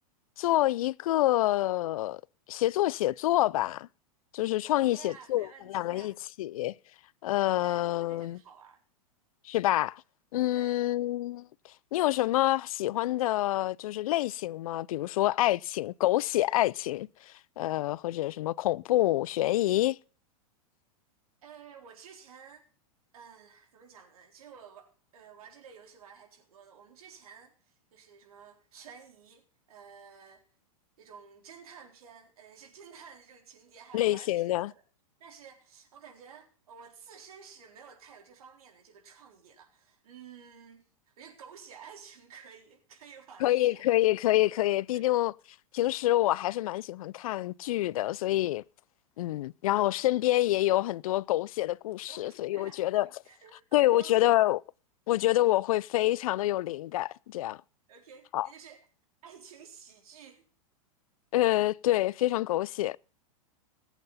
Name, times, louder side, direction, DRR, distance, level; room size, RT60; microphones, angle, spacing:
voice 1, 0.4-2.2 2.5-3.9 4.3-6.7 7.2-8.4 9.4-10.0 10.3-11.5 11.9-20.0 33.9-34.7 43.4-45.3 45.7-48.6 49.2-53.1 53.7-54.6 55.1-57.6 58.3-58.5 61.3-63.0, left 15 dB, 70° left, 0.5 m, -27 dB
voice 2, 4.7-6.1 7.6-8.8 10.5-10.8 21.4-22.6 23.1-30.4 31.0-34.8 35.2-43.8 44.9-45.1 52.1-53.6 53.9-54.2 57.9-58.8 59.2-60.4, right 7 dB, 80° right, 4.0 m, -52 dB
19.0 x 8.1 x 4.2 m
hypercardioid pair, 120°, 19 cm